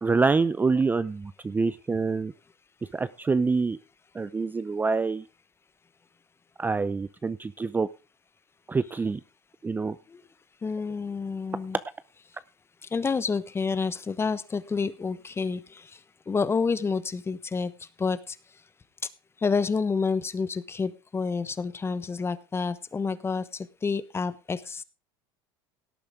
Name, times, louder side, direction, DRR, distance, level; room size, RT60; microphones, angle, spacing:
voice 1, 0.0-2.3 2.9-3.8 4.1-5.2 6.6-7.9 8.7-9.2 9.6-10.0, right 4 dB, 15° right, 16 dB, 0.5 m, -26 dB
voice 2, 10.6-11.8 12.9-18.4 19.4-24.8, left 5 dB, 20° left, 15 dB, 1.1 m, -29 dB
17.5 x 8.6 x 3.6 m, 0.32 s
supercardioid pair, 95°, 12 cm